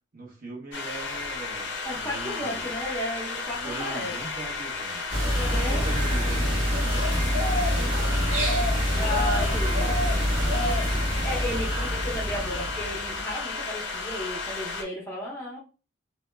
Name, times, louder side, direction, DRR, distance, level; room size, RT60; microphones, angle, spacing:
voice 1, 0.1-2.7 3.5-5.0 5.6-8.5 9.1-11.2, right 3 dB, 45° right, -3 dB, 0.8 m, -41 dB
sound 1, 0.7-14.8, left 4 dB, 55° left, 0.5 m, -33 dB
voice 2, 1.8-4.1 5.2-6.0 8.9-9.9 11.2-15.6, left 1 dB, 15° left, -4 dB, 0.6 m, -34 dB
sound 2, 5.1-13.2, equal, 70° right, 0.9 m, -26 dB
2.2 x 2.0 x 3.1 m, 0.34 s
head